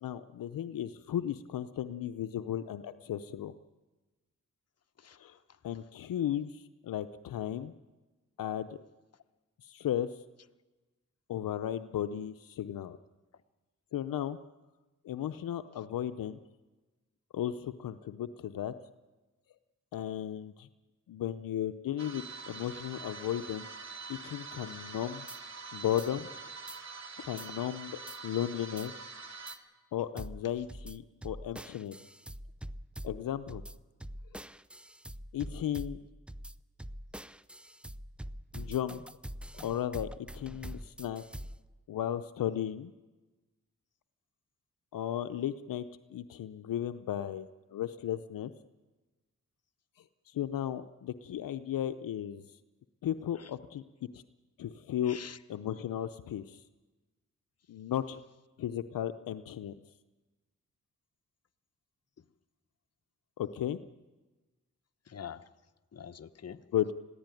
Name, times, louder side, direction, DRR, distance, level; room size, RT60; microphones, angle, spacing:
voice 1, 0.0-3.5 5.2-5.4 5.6-7.7 8.4-8.8 9.6-10.2 11.3-13.0 13.9-14.4 15.0-16.4 17.3-18.7 19.9-20.7 21.1-23.7 24.1-25.3 25.7-26.3 27.3-27.9 28.2-28.9 29.9-32.0 33.0-33.6 35.3-36.0 38.5-39.0 39.6-40.1 40.3-41.2 41.9-42.9 44.9-48.5 50.3-52.4 53.0-53.8 54.1-54.2 54.6-55.2 55.5-56.6 57.7-58.2 58.6-59.7 63.4-63.8 66.7-66.9, left 11 dB, 80° left, 11 dB, 0.7 m, -35 dB
voice 2, 5.0-5.6 15.7-15.8 27.2-27.4 53.3-53.5 55.0-55.4 62.2-62.3 65.0-65.5 65.9-66.6, left 8 dB, 50° left, 10 dB, 1.0 m, -47 dB
sound 1, 22.0-29.6, right 4 dB, 55° right, 2.3 m, -45 dB
sound 2, 25.3-25.4 26.0-26.1 26.7-26.8 27.4-27.5 28.1-28.2 28.8-28.9 29.5-29.6 30.2-41.7, right 1 dB, 5° right, 0.6 m, -45 dB
21.0 x 15.5 x 9.1 m, 1.2 s
cardioid pair, 55°, 33 cm